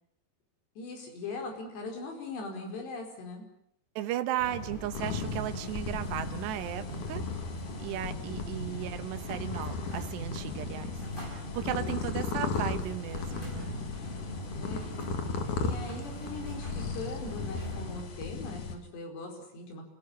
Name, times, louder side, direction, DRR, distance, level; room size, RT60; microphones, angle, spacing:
voice 1, 0.8-3.5 11.8-12.0 14.6-14.9 15.6-19.8, left 3 dB, 80° left, 3 dB, 7.1 m, -40 dB
voice 2, 4.0-7.3 7.8-13.8, right 13 dB, 85° right, 9 dB, 3.3 m, -36 dB
sound 1, 4.4-18.0, equal, 10° left, 5.6 m, -40 dB
sound 2, 4.9-18.8, left 5 dB, 55° left, 3.2 m, -37 dB
27.5 x 17.5 x 8.8 m, 0.74 s
omnidirectional pair, 4.8 m